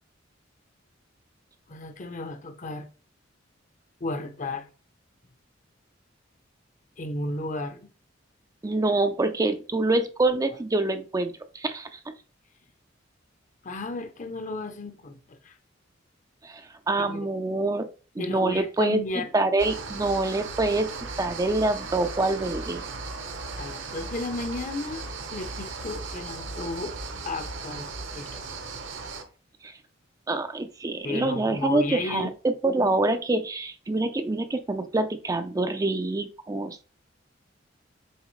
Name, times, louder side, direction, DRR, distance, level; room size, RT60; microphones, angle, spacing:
voice 1, 1.7-2.9 4.0-4.7 7.0-7.9 13.6-15.6 17.0-17.3 18.2-19.3 23.6-25.1 25.3-27.0 27.2-27.9 28.1-28.4 31.0-32.3, left 2 dB, 40° left, 0.7 m, -33 dB
voice 2, 8.6-12.0 16.4-17.9 18.2-19.0 19.3-20.9 21.2-22.9 29.6-29.7 30.3-36.8, right 2 dB, 20° right, 0.4 m, -26 dB
sound 1, 19.6-29.2, right 3 dB, 70° right, 1.0 m, -37 dB
7.2 x 4.1 x 3.1 m
head